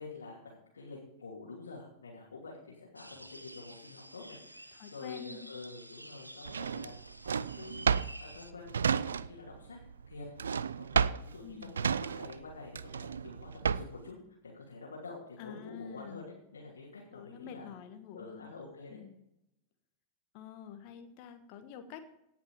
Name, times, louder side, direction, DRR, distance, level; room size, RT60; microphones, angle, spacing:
voice 1, 0.0-6.9 7.2-9.8 10.1-10.3 10.8-14.2 14.4-16.2 16.5-17.7 18.1-19.0, left 3 dB, 70° left, -6 dB, 2.9 m, -48 dB
sound 1, 3.0-8.5, right 1 dB, 85° right, 0.7 m, -51 dB
voice 2, 4.7-5.5 11.4-11.7 15.4-16.3 17.1-18.5 18.9-19.2 20.3-22.0, left 7 dB, 45° left, 7 dB, 1.5 m, -48 dB
Drawer open or close, 6.5-9.6 9.8-14.1, right 6 dB, 70° right, 0.3 m, -32 dB
17.5 x 5.9 x 5.0 m, 0.83 s
figure-of-eight pair, 90°, 0 cm